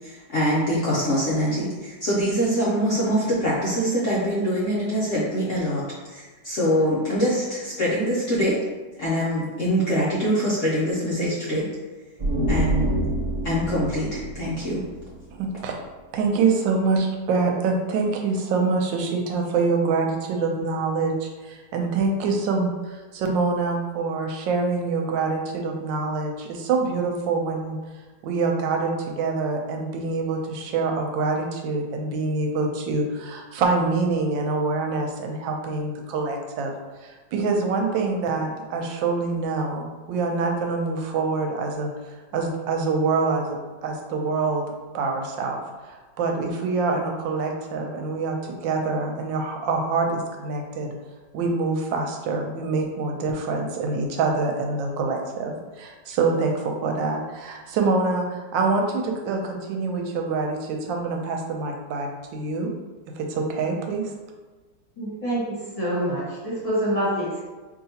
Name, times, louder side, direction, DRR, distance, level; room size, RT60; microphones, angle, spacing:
voice 1, 0.0-8.6 9.0-11.7 12.5-12.9 13.4-14.8, equal, 60° left, -7 dB, 0.9 m, -24 dB
sound 1, 12.2-15.8, right 1 dB, 35° right, 0.6 m, -27 dB
voice 2, 15.3-15.8 16.1-27.8 28.2-36.7 37.0-41.9 42.3-44.6 44.9-45.6 45.8-48.4 48.6-50.9 51.3-55.5 55.8-62.7 63.2-64.1, right 4 dB, 85° right, 2 dB, 1.3 m, -25 dB
voice 3, 65.0-67.4, right 1 dB, 20° left, -9 dB, 1.3 m, -26 dB
4.7 x 2.8 x 2.8 m, 1.3 s
omnidirectional pair, 2.0 m